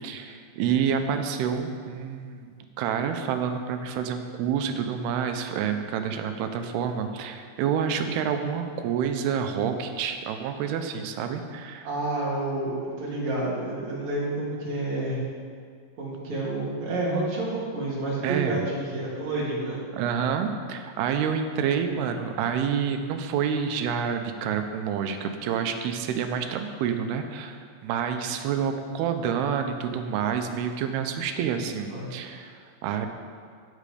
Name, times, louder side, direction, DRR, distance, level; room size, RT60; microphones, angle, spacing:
voice 1, 0.0-2.5 2.8-11.9 18.2-18.6 19.9-33.1, right 7 dB, 85° right, 6 dB, 2.7 m, -28 dB
voice 2, 11.8-15.2 16.0-19.8 31.9-32.1, right 2 dB, 50° right, -5 dB, 3.3 m, -29 dB
15.5 x 6.7 x 5.0 m, 2.1 s
omnidirectional pair, 4.5 m